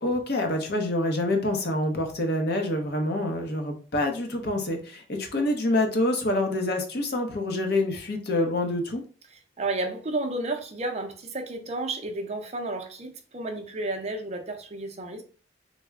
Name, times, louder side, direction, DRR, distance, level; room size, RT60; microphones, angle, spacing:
voice 1, 0.0-9.0, left 1 dB, 55° left, 4 dB, 0.7 m, -26 dB
voice 2, 9.3-15.2, right 2 dB, 35° right, 4 dB, 0.5 m, -32 dB
3.3 x 2.1 x 3.5 m, 0.38 s
head